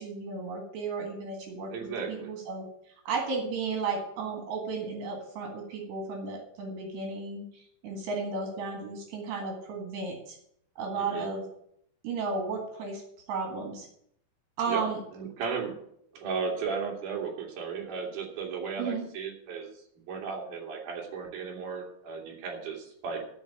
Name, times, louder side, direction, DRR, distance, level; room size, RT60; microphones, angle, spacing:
voice 1, 0.0-1.7 2.1-2.6 3.1-10.4 10.8-11.4 12.0-13.0 13.3-13.9 14.6-15.0 18.8-19.1, right 4 dB, 75° right, 2 dB, 3.8 m, -34 dB
voice 2, 1.7-2.4 10.9-11.3 14.7-14.8 15.1-15.7 16.1-23.3, right 5 dB, 50° right, -1 dB, 3.7 m, -35 dB
12.5 x 5.3 x 9.1 m, 0.69 s
omnidirectional pair, 5.1 m